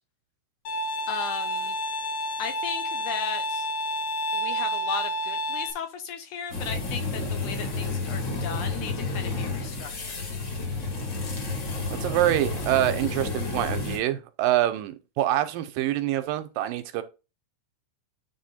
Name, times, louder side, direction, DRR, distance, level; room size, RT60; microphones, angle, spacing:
Bowed string instrument, 0.7-5.7, equal, 60° left, 2.3 m, -29 dB
voice 1, 1.1-1.8 2.4-3.7 4.3-10.2, left 6 dB, 75° left, 2.1 m, -36 dB
sound 1, 6.5-14.0, left 3 dB, 40° left, 1.8 m, -31 dB
voice 2, 11.9-17.0, right 14 dB, 85° right, 2.4 m, -25 dB
9.6 x 3.5 x 4.3 m
omnidirectional pair, 4.0 m